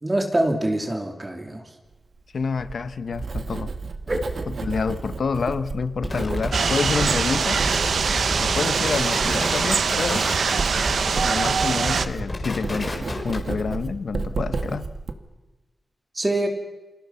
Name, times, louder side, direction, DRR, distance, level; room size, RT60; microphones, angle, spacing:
voice 1, 0.0-1.6 4.1-4.2 16.2-16.5, right 1 dB, 20° right, 3 dB, 3.0 m, -24 dB
voice 2, 2.3-3.7 4.6-7.6 8.4-10.3 11.2-14.9, left 5 dB, 65° left, 12 dB, 1.2 m, -28 dB
Writing, 2.4-15.1, right 4 dB, 55° right, 2.1 m, -32 dB
sound 1, 6.0-13.5, left 2 dB, 30° left, 4.2 m, -31 dB
sound 2, 6.5-12.1, right 5 dB, 85° right, 1.2 m, -23 dB
29.5 x 28.0 x 5.9 m, 1.1 s
wide cardioid pair, 165°, 0 cm